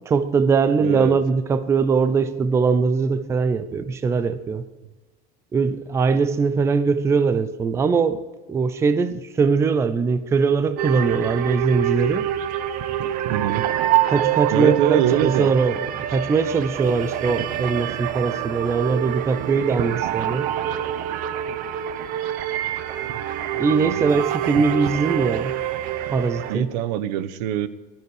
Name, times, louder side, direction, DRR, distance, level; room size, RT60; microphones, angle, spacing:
voice 1, 0.1-4.6 5.5-8.2 8.5-12.3 14.1-20.5 23.6-25.6 26.1-26.7, right 5 dB, 15° right, 0.5 m, -21 dB
voice 2, 0.8-1.2 13.3-13.7 14.5-15.5 23.7-24.1 26.5-27.7, right 11 dB, 80° right, 1.0 m, -23 dB
sound 1, 10.8-26.6, right 11 dB, 40° right, 1.0 m, -26 dB
19.5 x 12.5 x 4.9 m
cardioid pair, 175°, 21 cm